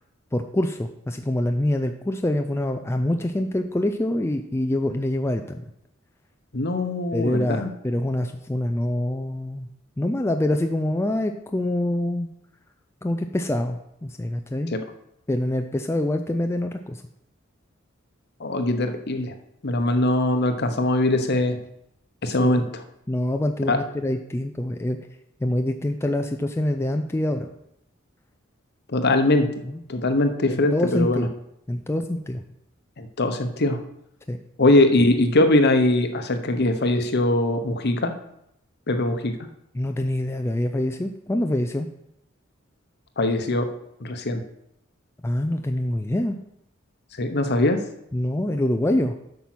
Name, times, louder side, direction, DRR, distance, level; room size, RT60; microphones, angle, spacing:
voice 1, 0.3-5.6 7.1-9.7 10.0-12.3 13.0-14.7 15.3-17.0 22.4-22.7 23.1-25.0 25.4-27.5 29.6-29.8 30.5-31.3 31.7-32.4 34.3-34.4 39.7-41.9 45.2-46.4 48.1-49.1, left 1 dB, 15° left, 5 dB, 0.4 m, -25 dB
voice 2, 6.5-7.7 14.7-14.8 18.4-19.3 19.6-21.6 22.2-22.8 23.7-23.8 28.9-29.5 29.9-31.3 33.0-33.8 34.6-38.1 38.9-39.3 43.2-43.7 44.0-44.4 47.2-47.8, left 2 dB, 55° left, 7 dB, 1.0 m, -21 dB
8.5 x 5.4 x 6.1 m, 0.79 s
head